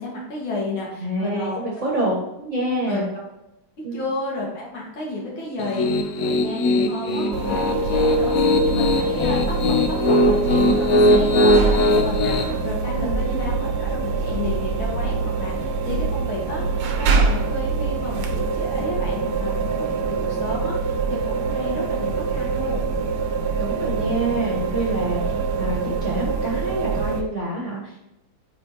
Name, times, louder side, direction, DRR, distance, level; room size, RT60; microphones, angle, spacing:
voice 1, 0.0-1.6 2.9-3.0 3.9-22.8, left 2 dB, 65° left, -4 dB, 2.5 m, -32 dB
voice 2, 1.0-3.1 3.8-4.0 12.9-13.2 23.6-28.0, right 1 dB, 40° right, -3 dB, 1.3 m, -27 dB
Piano, 5.6-12.4, left 1 dB, 90° left, 0.7 m, -19 dB
sound 1, 7.3-27.2, right 4 dB, 80° right, 1.7 m, -25 dB
8.9 x 4.0 x 2.9 m, 0.90 s
omnidirectional pair, 2.4 m